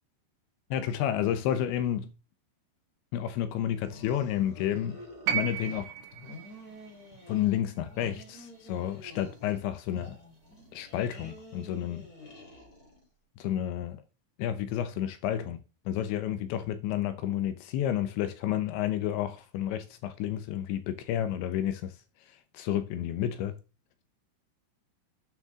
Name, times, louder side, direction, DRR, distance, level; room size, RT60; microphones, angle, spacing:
voice 1, 0.7-2.1 3.1-5.0 5.3-5.9 7.3-10.2 10.7-12.1 13.4-14.0 14.4-21.9 22.5-23.6, left 11 dB, 75° left, 2.9 m, -31 dB
sound 1, 3.8-5.8 6.1-7.6 7.8-9.6 9.8-13.0, left 2 dB, 20° left, 3.5 m, -49 dB
sound 2, 5.3-9.4 10.6-10.7, right 10 dB, 75° right, 3.2 m, -36 dB
9.8 x 9.2 x 3.7 m
omnidirectional pair, 6.0 m